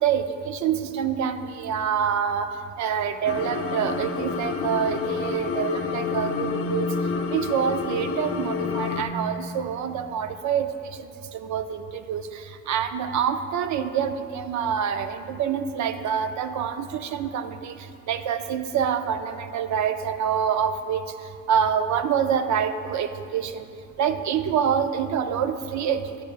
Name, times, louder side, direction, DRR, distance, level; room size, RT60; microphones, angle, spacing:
voice 1, 0.0-2.5 2.8-6.9 7.3-10.7 11.0-11.1 11.3-21.0 21.5-23.7 24.0-26.2, right 8 dB, 70° right, 9 dB, 0.6 m, -26 dB
sound 1, 3.3-9.0, left 5 dB, 50° left, 0.6 m, -28 dB
9.8 x 9.4 x 2.4 m, 2.6 s
cardioid pair, 90°, 30 cm